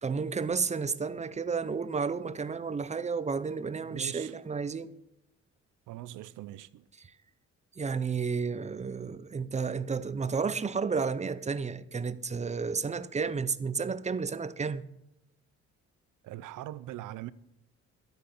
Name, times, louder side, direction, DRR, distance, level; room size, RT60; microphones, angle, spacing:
voice 1, 0.0-4.9 7.0-7.1 7.8-14.8, right 5 dB, 25° right, 0.6 m, -32 dB
voice 2, 3.8-4.3 5.9-6.8 16.2-17.3, right 14 dB, 90° right, 0.6 m, -41 dB
12.5 x 8.6 x 6.0 m
cardioid pair, 90°, 30 cm